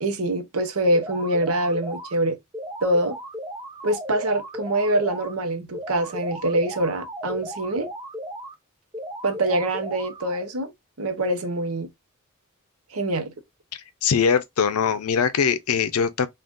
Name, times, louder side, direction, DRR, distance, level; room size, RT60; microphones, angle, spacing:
voice 1, 0.0-2.4 2.8-3.2 3.8-7.9 9.2-10.7 11.0-11.9 12.9-13.3, right 1 dB, 75° right, 0.8 m, -24 dB
sound 1, 0.9-2.1 2.5-5.3 5.7-8.5 8.9-10.5, equal, 15° right, 0.4 m, -36 dB
voice 2, 14.0-16.3, left 6 dB, 80° left, 0.5 m, -22 dB
3.6 x 2.4 x 2.5 m
head